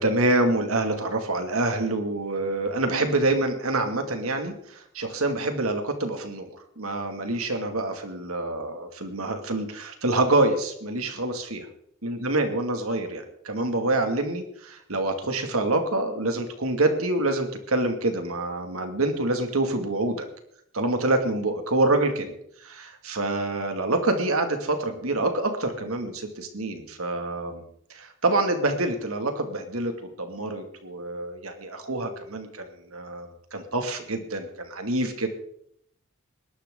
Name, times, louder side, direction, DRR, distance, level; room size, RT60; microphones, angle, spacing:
voice 1, 0.0-11.7 12.0-20.3 20.7-22.3 22.6-27.6 27.9-35.3, right 2 dB, 85° right, 5 dB, 2.3 m, -26 dB
20.5 x 11.5 x 3.8 m, 0.69 s
head